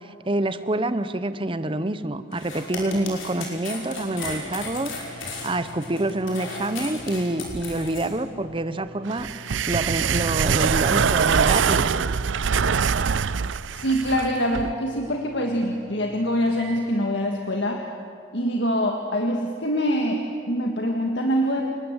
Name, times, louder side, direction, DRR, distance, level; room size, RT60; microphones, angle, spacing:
voice 1, 0.2-11.9, right 1 dB, 25° right, 12 dB, 0.9 m, -27 dB
sound 1, 2.3-8.1, left 3 dB, 85° left, 5.8 m, -35 dB
sound 2, 4.1-16.9, equal, 55° right, 4.2 m, -46 dB
sound 3, 9.1-14.7, right 6 dB, 70° right, 0.5 m, -23 dB
voice 2, 13.7-17.8 18.3-21.6, equal, 60° left, 2 dB, 1.8 m, -24 dB
28.0 x 20.0 x 8.1 m, 2.3 s
head